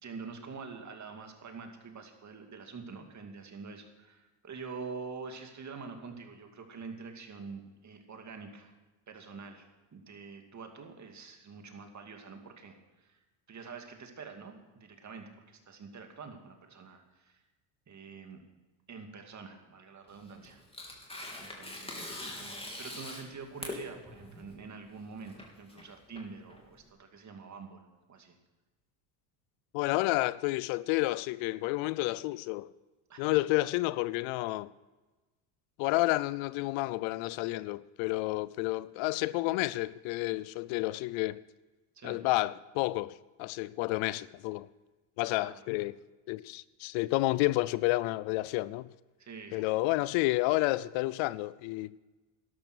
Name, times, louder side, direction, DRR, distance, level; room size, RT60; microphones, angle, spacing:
voice 1, 0.0-8.8 9.1-13.2 13.5-17.4 17.9-18.4 18.9-21.0 21.4-28.4 33.1-33.4 41.9-42.2 45.4-45.6 49.2-49.8, right 4 dB, 35° right, 2.5 m, -46 dB
Tearing, 20.1-26.9, left 1 dB, 10° left, 3.2 m, -43 dB
voice 2, 29.7-32.7 33.2-34.7 35.8-41.4 42.0-44.7 45.2-45.9 46.3-48.9 49.5-51.9, left 19 dB, 70° left, 0.6 m, -30 dB
12.5 x 12.0 x 6.2 m
supercardioid pair, 90°, 50 cm